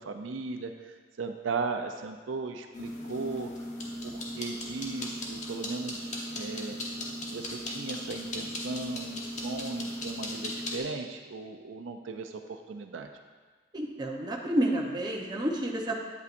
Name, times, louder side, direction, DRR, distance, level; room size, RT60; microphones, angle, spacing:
voice 1, 0.0-3.5 4.0-6.8 7.3-13.1, right 4 dB, 85° right, 6 dB, 0.5 m, -37 dB
sound 1, 2.7-10.8, left 1 dB, 40° left, 1.1 m, -37 dB
voice 2, 13.7-16.0, right 1 dB, 20° right, -1 dB, 0.9 m, -30 dB
9.2 x 8.3 x 2.6 m, 1.4 s
head